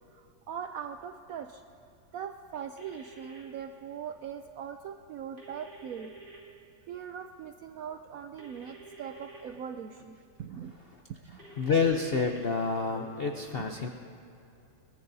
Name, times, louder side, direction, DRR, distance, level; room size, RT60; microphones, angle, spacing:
voice 1, 0.1-1.6 2.1-6.1 6.9-10.7 11.1-11.4 13.6-13.7, right 8 dB, 75° right, 7 dB, 0.8 m, -41 dB
sound 1, 2.8-3.4 5.4-6.4 8.4-9.4 11.4-12.4, right 2 dB, 25° right, 2.7 m, -50 dB
voice 2, 11.6-13.9, left 5 dB, 65° left, 4 dB, 0.5 m, -28 dB
22.5 x 20.0 x 2.7 m, 2.8 s
omnidirectional pair, 2.0 m